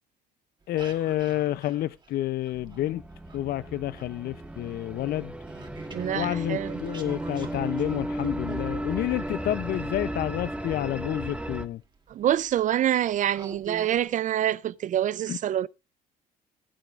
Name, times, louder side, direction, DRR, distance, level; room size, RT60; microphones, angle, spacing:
sound 1, 0.6-3.4 3.7-10.5 11.4-11.5 12.1-12.3 12.8-12.9 13.3-14.1, right 4 dB, 25° right, 2.7 m, -45 dB
voice 1, 0.7-3.0 3.3-5.3 6.1-11.8 15.3-15.4, left 14 dB, 65° left, 0.6 m, -29 dB
sound 2, 2.5-11.7, right 1 dB, 5° right, 1.6 m, -35 dB
voice 2, 5.9-6.8 12.1-15.7, right 11 dB, 50° right, 0.5 m, -26 dB
20.5 x 8.8 x 2.4 m
cardioid pair, 110°, 17 cm